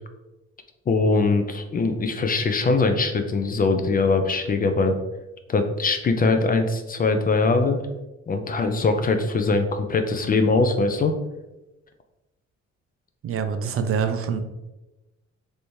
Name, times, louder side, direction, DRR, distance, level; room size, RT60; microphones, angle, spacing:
voice 1, 0.9-5.0 5.5-7.8 8.3-11.1, left 3 dB, 30° left, 6 dB, 0.4 m, -22 dB
voice 2, 13.2-14.4, right 6 dB, 50° right, 8 dB, 0.4 m, -25 dB
3.3 x 2.7 x 3.0 m, 1.0 s
cardioid pair, 90°, 30 cm